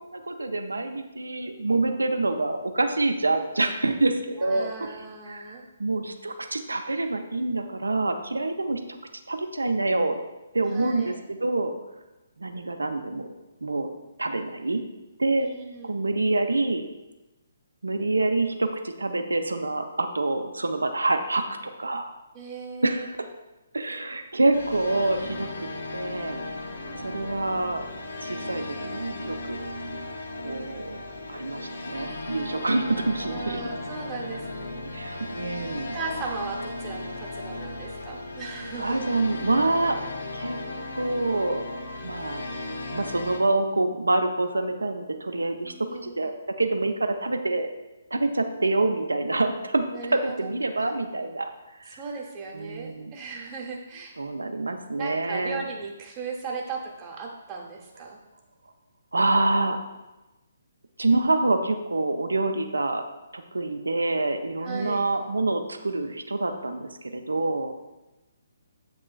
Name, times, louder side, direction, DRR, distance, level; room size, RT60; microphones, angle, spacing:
voice 1, 0.0-4.7 5.3-8.8 9.3-10.2 10.5-11.7 12.4-13.3 13.6-13.9 14.2-14.8 15.2-15.5 15.8-16.9 17.8-22.1 22.8-23.3 23.7-26.4 27.0-27.8 28.2-29.7 30.4-31.0 31.3-33.6 34.9-36.0 38.7-40.0 40.3-40.6 40.9-41.7 42.0-42.5 42.9-46.3 46.6-47.7 48.1-49.8 50.1-51.5 51.8-52.0 52.5-53.1 54.2-55.6 59.1-59.8 61.0-63.0 63.3-67.7, right 2 dB, 75° right, 6 dB, 0.4 m, -26 dB
voice 2, 4.4-5.7 10.7-11.2 15.4-16.0 22.3-23.0 26.7-27.3 33.2-35.1 35.9-39.0 45.6-46.1 49.9-50.5 51.9-54.2 55.0-58.2 64.6-65.0, right 4 dB, 25° right, -2 dB, 0.7 m, -37 dB
sound 1, 24.5-43.4, left 2 dB, 65° left, 0.5 m, -36 dB
7.3 x 3.0 x 2.3 m, 1.1 s
figure-of-eight pair, 135°, 0 cm